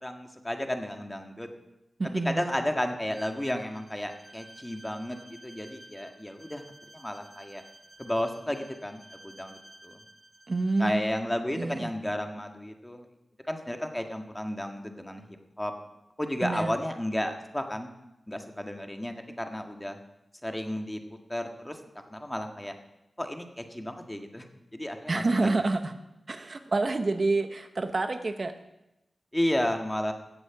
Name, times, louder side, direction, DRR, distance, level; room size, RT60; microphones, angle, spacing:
voice 1, 0.0-1.5 2.2-6.6 6.9-7.6 8.0-10.0 10.8-13.1 13.5-15.2 15.6-15.7 16.2-17.9 18.3-20.0 20.4-21.0 21.3-21.8 22.1-22.7 23.2-24.4 24.7-25.6 29.3-30.1, left 1 dB, 15° left, 4 dB, 1.7 m, -32 dB
voice 2, 2.0-2.4 10.5-11.1 11.6-11.9 16.4-16.7 25.1-25.9 26.3-28.5, right 3 dB, 50° right, 8 dB, 0.9 m, -28 dB
Bowed string instrument, 3.1-11.0, right 1 dB, 25° right, 1.9 m, -52 dB
16.0 x 8.1 x 5.9 m, 0.93 s
cardioid pair, 55°, 0 cm